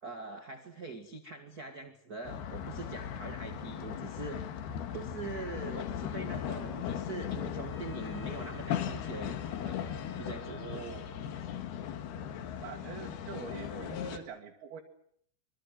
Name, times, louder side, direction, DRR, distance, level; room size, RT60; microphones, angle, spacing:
voice 1, 0.0-4.5 4.9-9.8 10.2-10.6, right 4 dB, 40° right, 6 dB, 1.4 m, -43 dB
sound 1, 2.2-14.2, left 9 dB, 75° left, 3.6 m, -38 dB
Wind instrument woodwind instrument, 7.7-11.6, left 5 dB, 50° left, 6.2 m, -52 dB
voice 2, 10.5-11.1 12.6-14.8, right 7 dB, 65° right, 1 dB, 3.8 m, -44 dB
25.0 x 24.5 x 7.7 m, 0.66 s
omnidirectional pair, 4.8 m